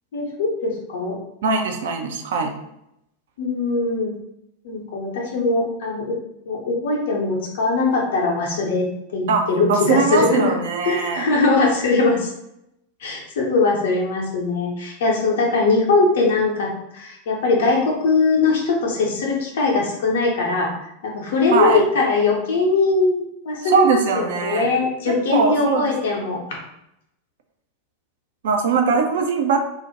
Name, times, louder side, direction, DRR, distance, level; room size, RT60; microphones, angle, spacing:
voice 1, 0.1-1.2 3.4-4.1 4.6-6.2 6.5-10.5 10.8-12.3 13.0-20.7 21.0-26.4, left 3 dB, 60° left, -2 dB, 0.6 m, -21 dB
voice 2, 1.4-2.5 9.3-11.3 21.5-21.8 23.6-24.7 25.1-25.9 28.4-29.6, right 5 dB, 55° right, 4 dB, 0.4 m, -21 dB
2.4 x 2.1 x 2.8 m, 0.81 s
figure-of-eight pair, 90°, 0 cm